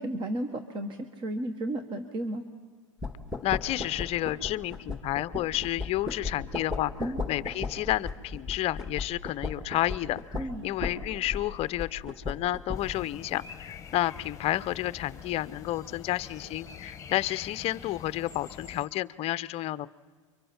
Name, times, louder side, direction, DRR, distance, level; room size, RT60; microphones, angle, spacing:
voice 1, 0.0-2.5 7.0-7.2 10.3-10.7, right 1 dB, 30° right, 7 dB, 1.3 m, -33 dB
sound 1, 3.0-13.1, left 3 dB, 5° right, 1.9 m, -37 dB
voice 2, 3.4-19.9, left 15 dB, 40° left, 16 dB, 0.6 m, -31 dB
sound 2, 12.7-18.9, left 7 dB, 20° left, 1.4 m, -45 dB
29.5 x 24.0 x 4.4 m, 1.4 s
hypercardioid pair, 105°, 16 cm